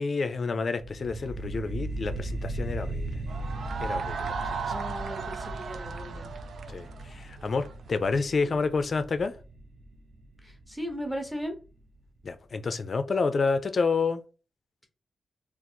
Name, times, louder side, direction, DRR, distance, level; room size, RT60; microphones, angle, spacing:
voice 1, 0.0-3.1 3.8-4.6 6.7-9.3 12.2-14.2, left 4 dB, 40° left, 0.5 m, -29 dB
sound 1, 0.8-11.8, right 2 dB, 50° right, 1.0 m, -38 dB
sound 2, 3.3-8.0, right 5 dB, 70° right, 0.5 m, -36 dB
voice 2, 4.6-6.3 8.3-8.6 10.4-11.6, equal, ahead, 0.9 m, -37 dB
3.9 x 2.5 x 4.4 m
wide cardioid pair, 160°, 0 cm